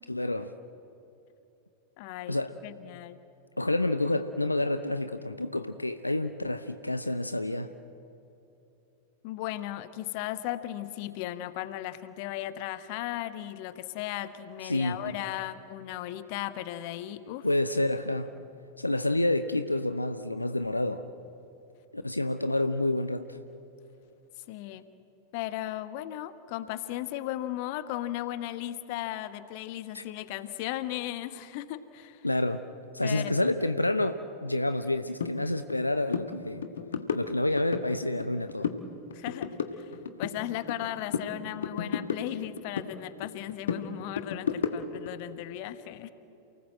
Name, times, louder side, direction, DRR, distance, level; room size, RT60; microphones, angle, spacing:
voice 1, 0.1-0.5 2.3-2.6 3.6-7.7 14.6-15.1 17.4-18.3 18.8-21.1 21.9-23.4 29.9-30.0 32.2-32.6 32.9-36.6 37.1-38.7, left 2 dB, 85° left, 10 dB, 0.7 m, -29 dB
voice 2, 2.0-2.4 2.6-3.2 9.2-17.5 24.5-24.9 25.3-32.3 33.0-33.5 39.1-39.9 40.2-46.1, left 14 dB, 45° left, 12 dB, 1.2 m, -36 dB
sound 1, 35.2-35.3 35.7-35.8 36.1-36.3 36.6-37.9 38.2-38.8 39.1-40.9 41.1-42.9 43.2-45.1, left 7 dB, 65° left, 1.4 m, -33 dB
28.5 x 19.0 x 7.7 m, 2.9 s
figure-of-eight pair, 90°, 0 cm